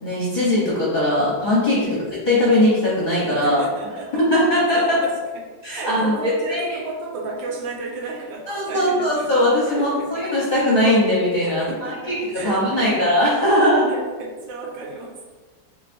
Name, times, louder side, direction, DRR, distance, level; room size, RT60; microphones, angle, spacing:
voice 1, 0.0-3.6 4.1-5.0 5.6-6.8 8.5-13.9, left 1 dB, 45° left, -9 dB, 0.6 m, -20 dB
voice 2, 1.8-2.2 3.3-4.2 4.7-5.2 5.7-10.3 11.4-13.0 13.9-15.4, right 3 dB, 80° right, -1 dB, 1.3 m, -33 dB
3.8 x 3.2 x 2.5 m, 1.4 s
omnidirectional pair, 2.0 m